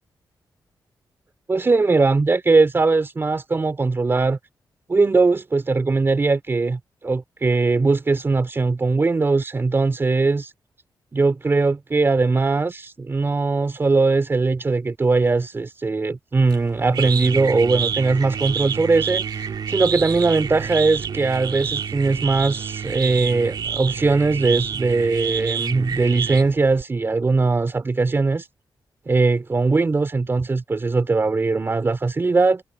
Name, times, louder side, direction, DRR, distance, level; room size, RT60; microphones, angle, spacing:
voice 1, 1.5-4.4 4.9-10.5 11.1-28.5 29.1-32.6, right 3 dB, 30° right, 2.9 m, -20 dB
sound 1, 16.5-26.8, right 7 dB, 65° right, 2.6 m, -28 dB
wide cardioid pair, 120°, 8 cm